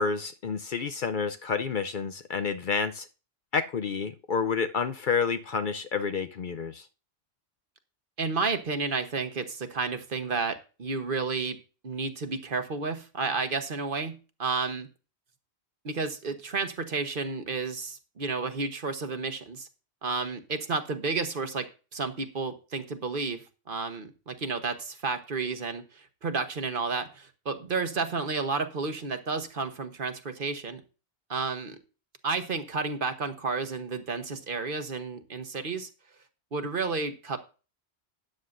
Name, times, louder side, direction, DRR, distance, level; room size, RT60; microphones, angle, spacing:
voice 1, 0.0-3.1 3.5-6.8, left 5 dB, 55° left, 9 dB, 0.7 m, -29 dB
voice 2, 8.2-11.6 11.8-14.9 15.8-19.7 20.0-21.7 21.9-30.8 31.3-31.8 32.2-35.9 36.5-37.4, right 4 dB, 55° right, 8 dB, 1.2 m, -31 dB
13.0 x 9.3 x 2.5 m, 0.33 s
omnidirectional pair, 1.1 m